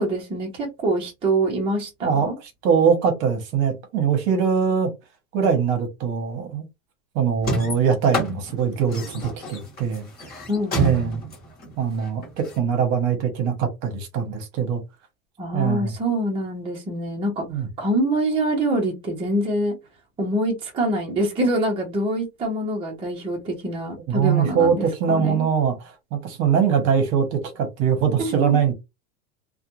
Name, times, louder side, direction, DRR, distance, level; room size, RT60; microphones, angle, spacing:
voice 1, 0.0-2.4 10.5-11.0 15.4-17.4 17.8-19.8 20.2-25.5 28.2-28.6, right 1 dB, 15° right, 0.7 m, -25 dB
voice 2, 2.6-4.9 5.3-6.6 7.1-10.1 10.8-11.2 11.8-14.8 15.5-15.9 17.5-17.7 24.1-28.7, right 7 dB, 40° right, 0.9 m, -22 dB
sound 1, 7.4-12.6, left 1 dB, 20° left, 1.0 m, -29 dB
2.4 x 2.2 x 2.9 m
supercardioid pair, 150°, 43 cm